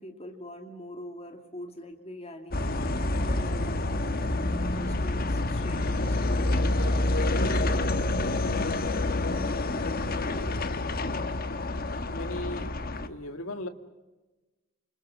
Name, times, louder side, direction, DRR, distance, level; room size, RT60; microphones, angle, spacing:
voice 1, 0.0-2.7 3.1-4.2 4.6-9.2, left 1 dB, 30° left, 4 dB, 2.7 m, -44 dB
sound 1, 2.5-13.1, left 2 dB, 45° left, 1.3 m, -28 dB
voice 2, 10.3-10.8 11.3-12.8 13.1-13.7, left 1 dB, 85° left, 8 dB, 2.1 m, -39 dB
28.5 x 26.0 x 6.2 m, 1.1 s
head